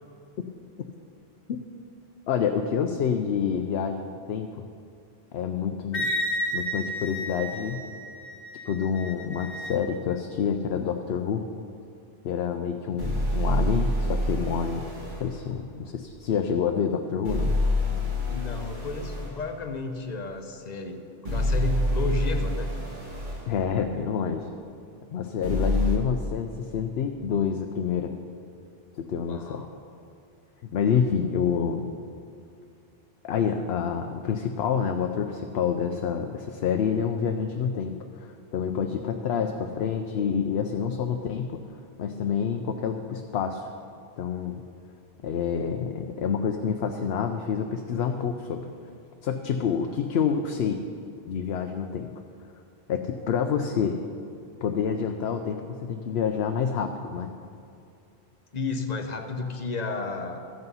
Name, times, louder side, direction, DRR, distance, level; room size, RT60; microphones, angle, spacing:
voice 1, 2.3-4.6 5.3-6.1 6.5-7.8 8.7-11.5 12.2-14.8 15.2-17.5 23.5-24.5 25.1-28.1 29.0-29.6 30.7-31.9 33.2-41.6 42.0-43.7 44.2-44.6 45.2-48.7 49.2-50.8 51.3-52.1 52.9-54.0 54.6-57.3, left 7 dB, 75° left, 5 dB, 0.8 m, -28 dB
Wind instrument woodwind instrument, 5.9-9.8, equal, 60° left, 1.3 m, -32 dB
sound 1, 13.0-15.3 17.2-19.3 21.2-23.4 25.4-26.0, left 1 dB, 50° right, 1.6 m, -27 dB
voice 2, 18.3-22.7 29.1-29.7 58.5-60.4, left 3 dB, 45° left, 6 dB, 0.9 m, -32 dB
13.5 x 8.1 x 5.5 m, 2.5 s
omnidirectional pair, 1.1 m